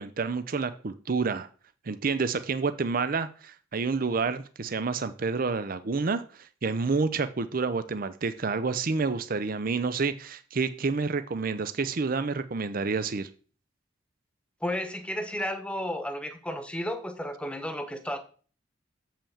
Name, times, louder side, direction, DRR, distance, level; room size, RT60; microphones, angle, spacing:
voice 1, 0.0-1.5 1.9-13.3, right 4 dB, 45° right, 0.6 m, -29 dB
voice 2, 14.6-18.2, left 1 dB, 5° left, 1.1 m, -33 dB
7.1 x 5.7 x 7.1 m
head